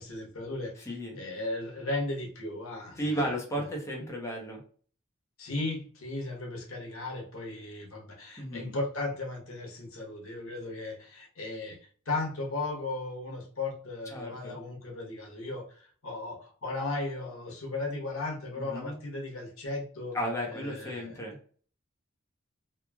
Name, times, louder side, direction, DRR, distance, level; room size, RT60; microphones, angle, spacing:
voice 1, 0.0-3.2 5.4-20.2 20.5-21.2, left 2 dB, 90° left, 0.9 m, -36 dB
voice 2, 0.9-1.2 3.0-4.6 8.4-8.7 14.1-14.6 18.6-19.0 20.1-21.4, equal, 15° left, 0.7 m, -34 dB
3.0 x 2.4 x 2.2 m
head